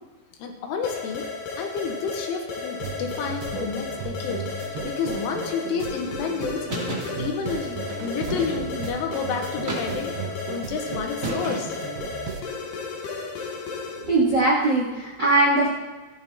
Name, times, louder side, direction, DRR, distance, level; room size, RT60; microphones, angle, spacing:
voice 1, 0.4-1.3 1.5-11.7, left 5 dB, 80° left, 4 dB, 3.7 m, -30 dB
sound 1, 0.8-14.2, left 4 dB, 65° left, 3.3 m, -34 dB
sound 2, 2.8-12.4, right 6 dB, 85° right, 2.1 m, -36 dB
sound 3, 6.7-7.1 8.3-8.8 9.7-10.3 11.2-11.9, right 1 dB, 20° right, 2.4 m, -31 dB
voice 2, 14.0-15.7, right 2 dB, 45° right, -3 dB, 1.4 m, -20 dB
14.5 x 11.5 x 4.3 m, 1.3 s
omnidirectional pair, 5.7 m